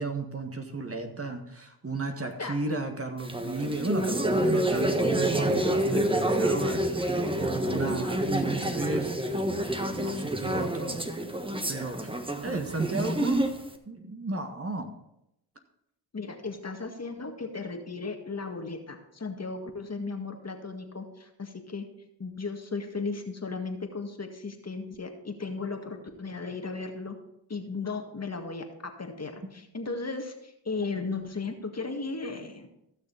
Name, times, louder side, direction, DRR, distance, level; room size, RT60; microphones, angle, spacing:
voice 1, 0.0-9.1 9.8-11.0 11.7-12.1 12.4-13.5 13.9-14.9, right 3 dB, 30° right, 5 dB, 1.7 m, -34 dB
sound 1, 3.2-13.7, right 1 dB, 10° right, 1.4 m, -28 dB
voice 2, 16.1-21.9 22.2-27.2 27.5-28.6 29.0-32.7, left 4 dB, 35° left, 4 dB, 1.9 m, -36 dB
15.5 x 6.5 x 4.1 m, 0.82 s
hypercardioid pair, 40°, 44 cm